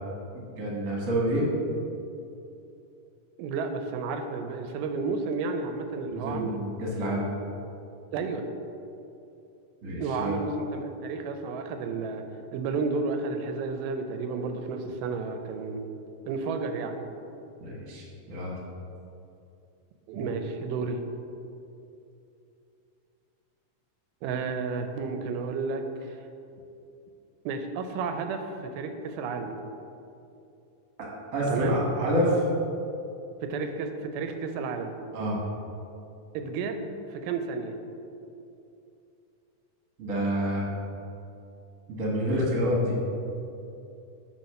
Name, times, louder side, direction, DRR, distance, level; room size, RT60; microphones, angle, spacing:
voice 1, 0.3-1.5 6.0-7.3 9.8-10.3 17.6-18.6 20.1-20.2 31.3-32.4 35.1-35.4 40.0-40.7 41.9-43.0, equal, 50° right, -3 dB, 1.0 m, -28 dB
voice 2, 3.4-6.6 8.1-8.5 10.0-12.3 12.5-15.8 16.2-17.1 20.1-21.0 24.2-26.2 27.5-29.6 31.5-31.8 33.4-34.9 36.3-37.8, right 4 dB, 90° right, 7 dB, 2.3 m, -32 dB
8.6 x 3.1 x 6.5 m, 2.7 s
omnidirectional pair, 3.8 m